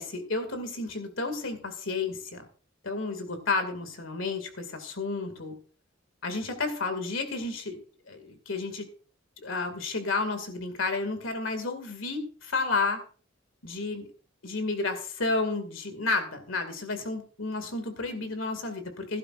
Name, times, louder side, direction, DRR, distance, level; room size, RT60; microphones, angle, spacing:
voice 1, 0.0-2.5 2.8-5.6 6.2-7.8 8.1-8.9 9.4-13.0 13.6-14.0 14.4-19.2, left 3 dB, 75° left, 8 dB, 2.3 m, -31 dB
16.5 x 12.0 x 2.5 m, 0.41 s
head